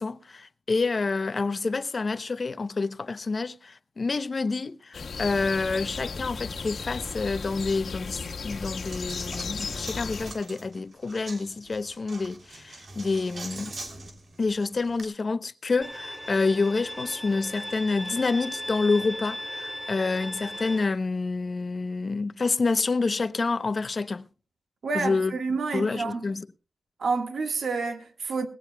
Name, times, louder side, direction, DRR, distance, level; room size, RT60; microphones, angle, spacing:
voice 1, 0.0-13.7 14.4-24.3 24.9-25.3 25.7-26.4, left 3 dB, 50° left, 0.7 m, -28 dB
sound 1, 4.9-10.3, left 5 dB, 80° left, 1.4 m, -35 dB
Coin (dropping), 8.3-15.0, right 2 dB, 65° right, 3.1 m, -44 dB
Bowed string instrument, 15.8-20.8, left 1 dB, 10° right, 4.6 m, -37 dB
voice 2, 24.8-26.2 27.0-28.5, right 4 dB, 85° right, 1.6 m, -29 dB
20.5 x 16.5 x 2.3 m
wide cardioid pair, 75°, 0 cm